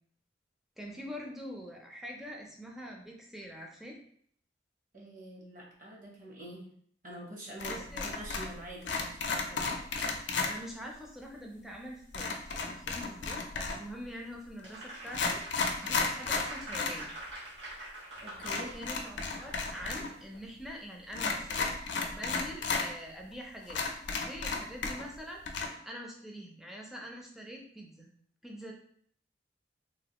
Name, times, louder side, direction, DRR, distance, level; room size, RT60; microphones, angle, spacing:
voice 1, 0.8-4.0 7.6-8.0 10.5-17.1 18.7-21.7 22.1-23.8 24.2-25.4 25.8-28.1 28.4-28.7, equal, ahead, 0 dB, 0.5 m, -44 dB
voice 2, 4.9-6.7 7.0-9.7 18.2-18.8, right 1 dB, 50° right, -3 dB, 0.9 m, -46 dB
sound 1, 7.6-8.6 8.8-10.5 12.1-13.9 14.6-14.7 15.1-17.0 17.3-17.4 18.4-20.1 20.3-20.4 21.1-22.9 23.3-23.4 23.7-25.2 25.4-25.7, left 4 dB, 80° left, 0.5 m, -33 dB
Applause, 14.6-20.2, right 1 dB, 70° right, 1.2 m, -45 dB
3.1 x 2.4 x 2.9 m, 0.62 s
head